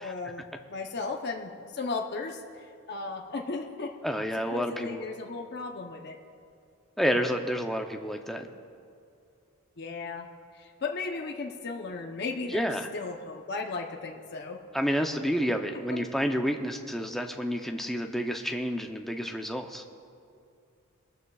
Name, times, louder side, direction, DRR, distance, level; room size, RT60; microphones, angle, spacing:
voice 1, 0.0-3.9 4.5-6.2 7.1-7.3 9.8-10.3 10.5-14.6 15.9-16.0, left 4 dB, 50° left, 2 dB, 0.7 m, -36 dB
voice 2, 4.0-5.0 7.0-8.5 12.5-12.9 14.7-19.8, equal, ahead, 3 dB, 0.6 m, -29 dB
22.5 x 13.0 x 2.4 m, 2.4 s
head